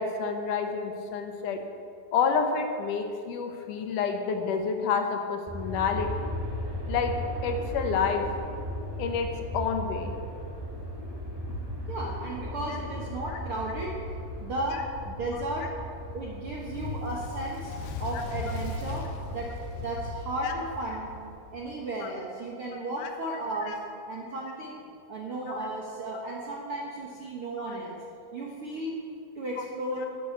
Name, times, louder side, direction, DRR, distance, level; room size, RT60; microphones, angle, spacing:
voice 1, 0.0-1.6 2.1-6.3 6.9-7.2 7.4-8.2 9.0-10.2 20.4-20.5 23.0-23.1 23.6-23.8 25.5-25.6, left 5 dB, 70° left, 5 dB, 2.6 m, -29 dB
Aircraft, 5.5-21.6, equal, 10° right, 1.7 m, -37 dB
voice 2, 11.9-13.9 14.4-15.7 16.1-17.7 18.0-21.1 21.5-23.8 24.1-24.8 25.1-28.0 28.3-28.9 29.3-30.1, right 1 dB, 55° right, -2 dB, 1.6 m, -34 dB
Fire, 16.6-21.1, left 4 dB, 90° left, 2.8 m, -38 dB
12.0 x 8.5 x 8.3 m, 2.4 s
omnidirectional pair, 3.9 m